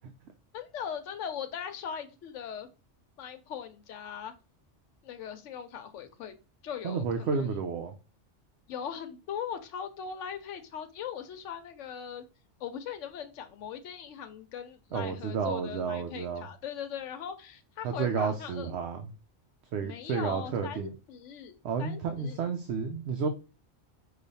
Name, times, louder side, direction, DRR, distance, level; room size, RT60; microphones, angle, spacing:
voice 1, 0.5-2.7 3.2-4.3 5.0-6.4 6.6-7.5 8.7-12.2 12.6-18.7 19.8-22.4, left 8 dB, 90° left, 8 dB, 1.0 m, -40 dB
voice 2, 6.8-7.9 14.9-16.5 17.8-19.0 19.7-20.9 21.6-23.3, right 6 dB, 70° right, 6 dB, 0.8 m, -31 dB
5.0 x 2.3 x 4.0 m, 0.31 s
omnidirectional pair, 1.2 m